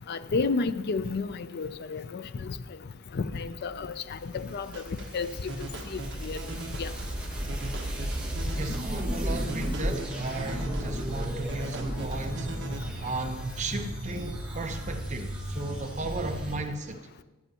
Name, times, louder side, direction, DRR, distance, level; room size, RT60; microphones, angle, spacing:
voice 1, 0.1-2.6 3.1-6.4 6.8-6.9, left 4 dB, 50° left, 12 dB, 0.4 m, -32 dB
sound 1, 3.7-16.6, right 1 dB, 5° right, 1.9 m, -34 dB
sound 2, 4.7-12.8, right 1 dB, 55° right, 1.4 m, -42 dB
voice 2, 8.5-12.5 13.0-17.0, right 2 dB, 35° right, 4 dB, 0.9 m, -35 dB
14.5 x 10.0 x 2.9 m, 1.2 s
head